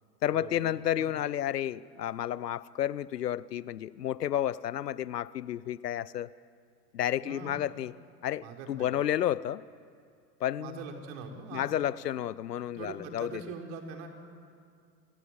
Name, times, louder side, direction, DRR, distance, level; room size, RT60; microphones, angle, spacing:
voice 1, 0.2-6.3 6.9-7.9 8.2-9.7 10.4-10.8 11.5-13.4, left 11 dB, 70° left, 0.8 m, -31 dB
voice 2, 7.2-7.6 8.4-8.9 10.6-11.7 12.7-14.1, right 5 dB, 50° right, 4.6 m, -42 dB
29.5 x 25.0 x 7.6 m
figure-of-eight pair, 95°, 50 cm